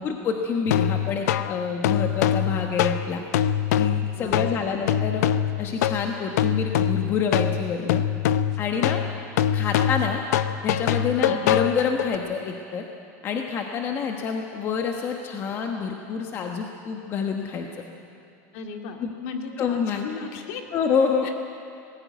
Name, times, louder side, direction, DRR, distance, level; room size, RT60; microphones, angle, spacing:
voice 1, 0.0-3.2 3.8-5.3 5.6-8.0 8.6-9.0 9.5-10.2 10.6-12.8 13.2-17.7 19.0-19.1 19.6-20.1 20.7-21.3, left 6 dB, 25° left, 3 dB, 1.1 m, -27 dB
sound 1, 0.7-12.2, left 10 dB, 75° left, 0.7 m, -24 dB
voice 2, 4.1-4.9 11.1-11.4 18.5-20.6 21.2-21.3, left 4 dB, 55° left, 3 dB, 2.2 m, -36 dB
19.5 x 15.5 x 9.3 m, 2.6 s
supercardioid pair, 165°, 9 cm